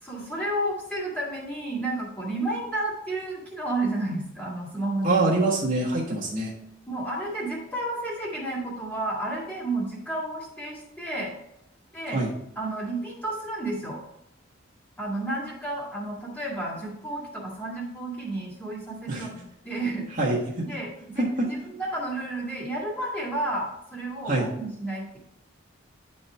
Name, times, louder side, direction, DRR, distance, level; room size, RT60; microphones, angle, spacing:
voice 1, 0.0-5.2 6.1-6.2 6.9-11.3 11.9-12.2 12.6-14.0 15.0-20.0 20.7-25.2, right 2 dB, 10° left, -5 dB, 2.0 m, -31 dB
voice 2, 5.0-6.5 12.1-12.3 19.1-19.3 20.2-20.6 21.2-21.5 24.2-24.5, right 2 dB, 45° right, -4 dB, 1.4 m, -24 dB
9.8 x 4.3 x 3.4 m, 0.78 s
head